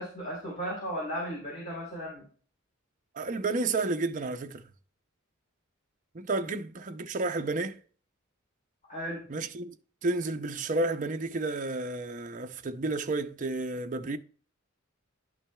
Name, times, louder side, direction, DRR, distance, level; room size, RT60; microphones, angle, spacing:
voice 1, 0.0-2.2 8.9-9.2, equal, 35° left, 3.2 m, -35 dB
voice 2, 3.2-4.6 6.1-7.8 9.3-9.7 10.0-14.2, right 3 dB, 40° right, 0.6 m, -31 dB
11.0 x 6.0 x 2.3 m
head